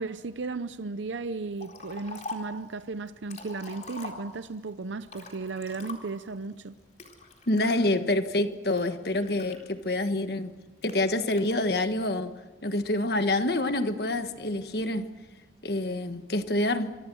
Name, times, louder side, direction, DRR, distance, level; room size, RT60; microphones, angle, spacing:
voice 1, 0.0-6.7, right 3 dB, 90° right, 0.7 m, -35 dB
Liquid, 1.6-2.6 3.1-4.6 5.1-6.3 7.0-7.8 8.4-10.0 10.8-11.5, left 3 dB, 40° left, 4.1 m, -43 dB
voice 2, 7.5-10.5 10.8-12.3 12.6-15.1 15.6-17.0, left 1 dB, 60° left, 1.5 m, -27 dB
26.5 x 24.0 x 6.3 m
head